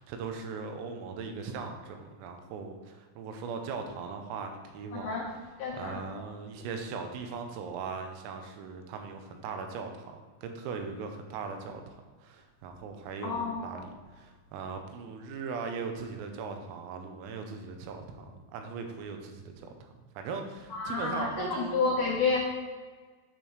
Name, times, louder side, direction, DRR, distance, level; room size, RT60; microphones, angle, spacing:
voice 1, 0.0-5.2 5.8-11.8 12.2-21.8, right 5 dB, 85° right, 5 dB, 3.5 m, -39 dB
voice 2, 4.9-5.3 5.6-6.0 13.2-13.9 20.7-22.4, left 4 dB, 85° left, -3 dB, 2.1 m, -30 dB
8.2 x 6.7 x 3.1 m, 1.4 s
omnidirectional pair, 5.9 m